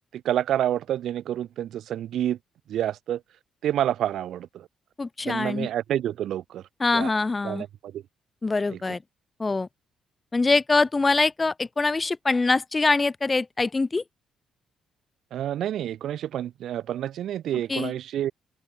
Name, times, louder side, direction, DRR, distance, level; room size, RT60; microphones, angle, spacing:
voice 1, 0.1-2.4 2.7-3.2 3.6-4.7 5.2-6.6 6.9-7.1 7.4-8.0 8.7-8.8 15.3-18.3, right 11 dB, 75° right, 1.9 m, -28 dB
voice 2, 5.0-5.7 6.8-7.6 8.4-9.0 9.4-9.7 10.3-14.0 17.7-17.9, left 3 dB, 25° left, 1.0 m, -24 dB
open air
cardioid pair, 90°, 0 cm